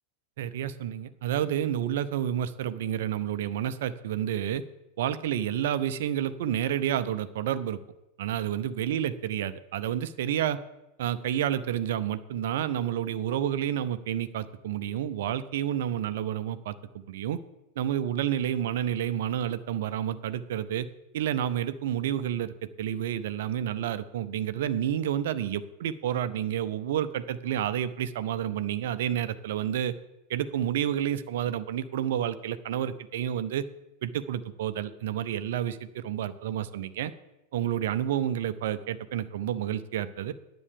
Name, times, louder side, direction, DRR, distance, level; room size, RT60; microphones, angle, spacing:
voice 1, 0.4-4.6 5.0-7.8 8.2-10.6 11.0-17.4 17.8-20.9 21.1-29.9 30.3-33.6 34.0-37.1 37.5-40.3, right 10 dB, 55° right, 14 dB, 0.6 m, -30 dB
9.9 x 7.8 x 6.8 m, 0.96 s
figure-of-eight pair, 90°, 0 cm